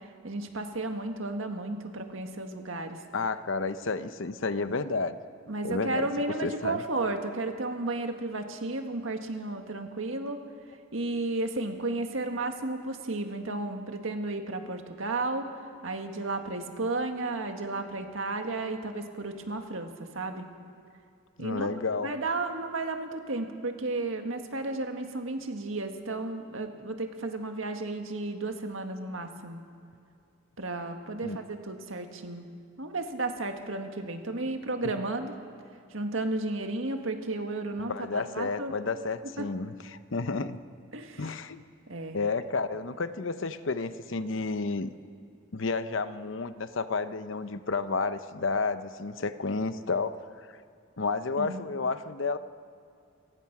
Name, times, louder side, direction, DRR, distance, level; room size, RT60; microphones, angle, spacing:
voice 1, 0.0-3.0 5.5-10.4 10.9-15.5 15.8-20.5 21.4-21.8 22.0-29.6 30.6-32.5 32.8-35.3 35.9-38.7 39.4-39.5 40.9-41.3 41.9-42.3 51.4-51.6, right 2 dB, 75° right, 5 dB, 1.8 m, -33 dB
voice 2, 3.1-5.2 5.6-6.1 6.4-6.8 21.4-22.1 31.2-31.4 37.8-39.7 40.1-40.6 41.2-41.6 42.1-44.9 45.5-50.5 51.0-52.4, left 4 dB, 70° left, 12 dB, 0.8 m, -31 dB
29.0 x 16.0 x 6.0 m, 2.5 s
head